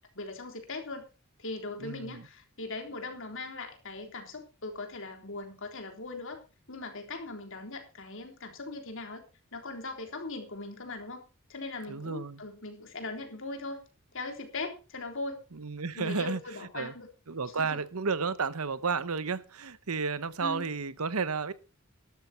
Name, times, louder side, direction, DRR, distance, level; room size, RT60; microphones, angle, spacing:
voice 1, 0.2-1.1 1.4-6.4 6.7-9.2 9.5-13.8 14.1-15.4 15.9-17.1 17.5-17.8 20.4-20.7, left 3 dB, 65° left, 3.6 m, -40 dB
voice 2, 1.8-2.2 11.9-12.4 15.5-16.4 16.7-16.9 17.3-21.5, right 5 dB, 90° right, 1.0 m, -32 dB
13.5 x 12.0 x 4.4 m
head